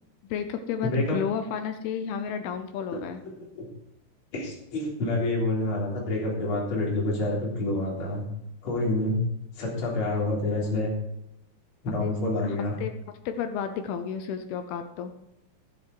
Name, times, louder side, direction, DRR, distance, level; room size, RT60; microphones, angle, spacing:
voice 1, 0.3-3.2 12.0-12.1 12.4-13.0 13.3-15.1, left 7 dB, 80° left, 8 dB, 2.3 m, -32 dB
voice 2, 0.8-1.2 3.5-3.7 4.3-8.3 8.6-9.2 9.6-10.9 11.8-12.8, left 2 dB, 30° left, -4 dB, 3.8 m, -27 dB
12.0 x 9.6 x 4.8 m, 0.80 s
omnidirectional pair, 5.3 m